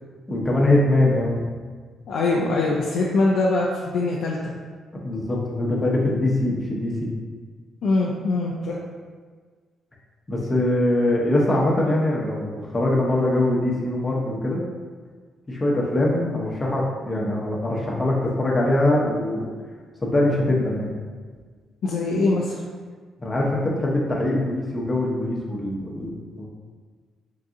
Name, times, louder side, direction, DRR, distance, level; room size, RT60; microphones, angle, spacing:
voice 1, 0.3-1.3 4.9-7.1 10.3-14.6 15.5-19.5 20.0-20.9 23.2-26.5, left 1 dB, 20° left, -2 dB, 0.9 m, -22 dB
voice 2, 2.1-4.4 7.8-8.8 21.8-22.6, left 2 dB, 65° left, -3 dB, 0.5 m, -22 dB
3.9 x 2.7 x 3.6 m, 1.5 s
cardioid pair, 90°, 0 cm